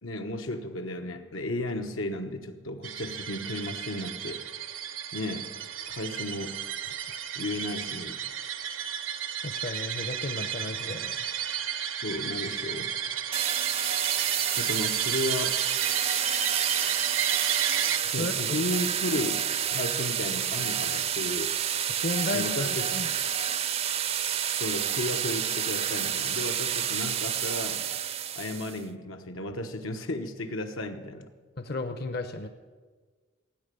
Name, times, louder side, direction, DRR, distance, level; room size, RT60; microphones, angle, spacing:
voice 1, 0.0-4.4 5.1-5.5 5.9-6.6 7.3-8.2 12.0-12.9 14.6-15.6 18.1-19.4 19.7-21.6 22.3-22.9 24.5-27.8 28.3-31.3, left 1 dB, 85° left, 5 dB, 1.3 m, -34 dB
sound 1, 2.8-18.0, right 9 dB, 80° right, 0.9 m, -33 dB
voice 2, 9.4-11.3 18.0-18.6 22.0-23.1 31.6-32.5, left 2 dB, 50° left, 9 dB, 0.8 m, -34 dB
sound 2, 13.3-28.8, right 9 dB, 30° right, 0.4 m, -29 dB
16.5 x 9.4 x 6.9 m, 1.4 s
head